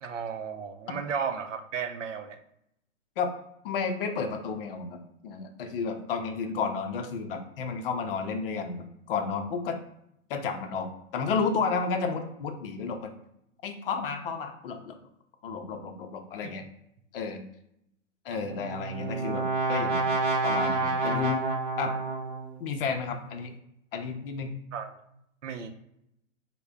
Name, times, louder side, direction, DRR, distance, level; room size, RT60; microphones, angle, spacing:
voice 1, 0.0-2.4 18.3-18.7 24.7-25.0 25.4-25.7, right 6 dB, 75° right, 7 dB, 0.6 m, -34 dB
voice 2, 3.6-5.0 5.2-9.8 10.3-13.1 13.6-15.0 15.4-16.7 17.1-17.4 18.2-20.1 20.4-21.4 21.8-21.9 22.6-23.5 23.9-24.6, left 5 dB, 50° left, 5 dB, 0.6 m, -32 dB
Brass instrument, 18.4-22.6, right 3 dB, 30° right, 0.5 m, -29 dB
3.2 x 2.2 x 3.6 m, 0.78 s
hypercardioid pair, 125°, 38 cm